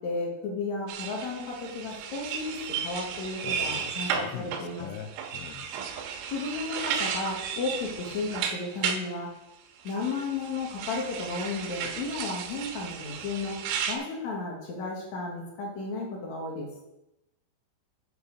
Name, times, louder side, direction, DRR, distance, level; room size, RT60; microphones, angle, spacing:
voice 1, 0.0-5.1 6.3-9.3 9.8-13.6 13.9-16.7, left 3 dB, 65° left, -2 dB, 1.8 m, -33 dB
sound 1, 0.9-9.0 9.9-14.0, right 7 dB, 90° right, 3.6 m, -34 dB
voice 2, 3.4-5.7, left 10 dB, 85° left, 10 dB, 3.3 m, -41 dB
12.5 x 8.2 x 4.0 m, 0.93 s
omnidirectional pair, 5.9 m